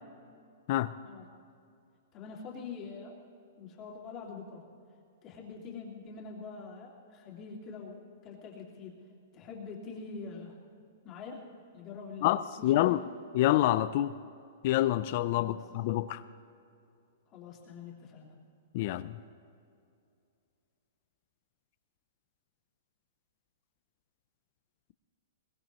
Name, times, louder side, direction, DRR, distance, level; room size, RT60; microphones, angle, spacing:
voice 1, 2.1-3.1 3.6-4.6 5.2-9.0 9.3-10.6 11.0-11.4 11.7-13.0 15.3-15.6 17.3-18.3, left 5 dB, 25° left, 2.4 m, -44 dB
voice 2, 12.2-13.0 13.3-14.1 14.6-16.2 18.7-19.2, left 14 dB, 40° left, 0.4 m, -27 dB
22.0 x 21.5 x 3.1 m
hypercardioid pair, 165°, 0 cm